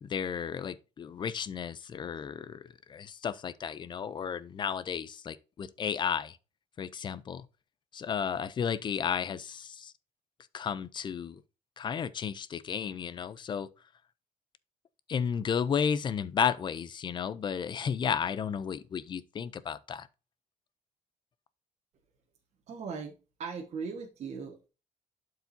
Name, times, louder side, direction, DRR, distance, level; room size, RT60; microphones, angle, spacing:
voice 1, 0.0-6.4 6.8-7.5 7.9-9.9 10.5-11.4 11.8-13.7 15.1-20.1, left 7 dB, 35° left, 0.5 m, -33 dB
voice 2, 22.7-24.7, right 5 dB, 55° right, 1.5 m, -39 dB
11.5 x 4.8 x 2.7 m
cardioid pair, 165°, 14 cm